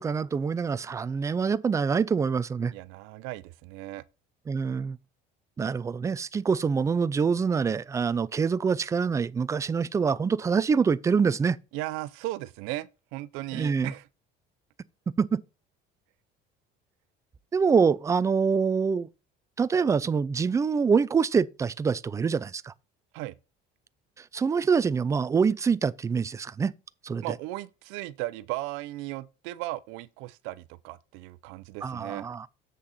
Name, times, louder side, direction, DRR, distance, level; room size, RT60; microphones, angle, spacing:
voice 1, 0.0-2.7 4.5-5.0 5.6-11.6 13.5-13.9 15.2-15.4 17.5-19.1 19.6-22.7 24.2-26.7 27.0-27.2 31.8-32.5, right 5 dB, 15° right, 0.3 m, -25 dB
voice 2, 2.7-4.0 11.7-14.0 23.1-23.3 27.2-32.3, right 17 dB, 90° right, 0.6 m, -36 dB
7.7 x 6.4 x 4.2 m
cardioid pair, 145°, 20 cm